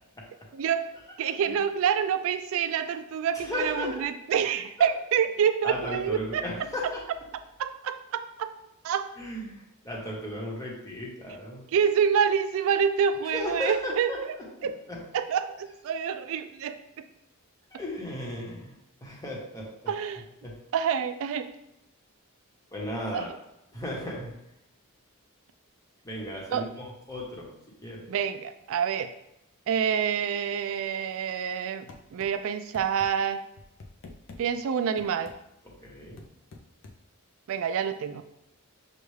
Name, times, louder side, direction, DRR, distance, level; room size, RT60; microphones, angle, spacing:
voice 1, 0.5-0.9 1.2-6.4 7.6-8.5 8.8-9.1 11.7-14.1 14.6-14.8 15.1-16.8 19.9-20.2 20.7-21.5 23.1-23.3 26.5-26.7 28.1-29.1 29.7-33.5 34.4-35.3 37.5-38.2, right 7 dB, 65° right, 10 dB, 0.3 m, -27 dB
voice 2, 3.3-3.9 4.8-4.9 5.6-7.0 9.2-11.6 13.2-15.0 17.7-18.7 19.0-19.7 20.4-20.6 22.7-23.3 23.7-24.3 26.0-27.5 27.8-28.1 35.8-36.2, left 1 dB, 15° left, -4 dB, 1.0 m, -35 dB
sound 1, 31.9-32.3 32.7-33.1 33.6-34.4 35.0-35.4 36.2-37.0, left 3 dB, 60° left, 0.5 m, -46 dB
6.5 x 2.3 x 3.2 m, 0.84 s
head